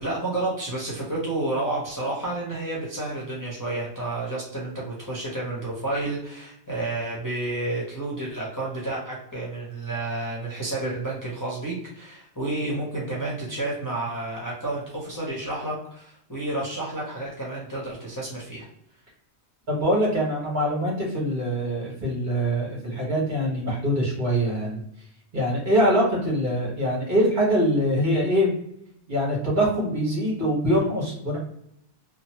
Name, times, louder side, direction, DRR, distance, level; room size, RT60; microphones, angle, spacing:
voice 1, 0.0-18.7, right 2 dB, 20° left, -6 dB, 0.7 m, -30 dB
voice 2, 19.7-24.8 25.3-28.5 29.1-31.4, equal, 45° right, -4 dB, 1.3 m, -23 dB
2.9 x 2.1 x 2.8 m, 0.74 s
omnidirectional pair, 1.2 m